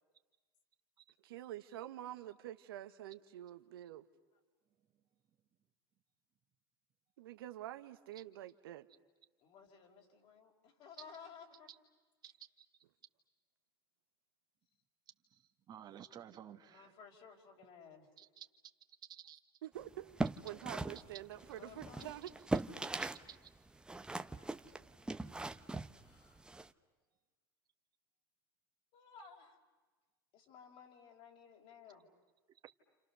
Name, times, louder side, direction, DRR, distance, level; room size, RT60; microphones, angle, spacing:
voice 1, 1.2-4.0 7.2-8.9 19.6-22.3, right 13 dB, 80° right, 9 dB, 1.3 m, -47 dB
voice 2, 9.4-11.7 16.7-18.1 21.6-22.1 26.0-26.4 28.9-29.6 30.3-32.1, left 6 dB, 50° left, 2 dB, 5.3 m, -56 dB
voice 3, 12.2-12.7 15.3-15.4 15.7-17.0 18.2-18.5 19.1-19.4 23.0-23.5 32.6-32.7, right 10 dB, 35° right, 6 dB, 1.7 m, -54 dB
sound 1, 19.9-23.3 23.5-26.7, right 2 dB, 5° right, 0.9 m, -40 dB
30.0 x 28.5 x 6.9 m, 1.3 s
supercardioid pair, 110°, 12 cm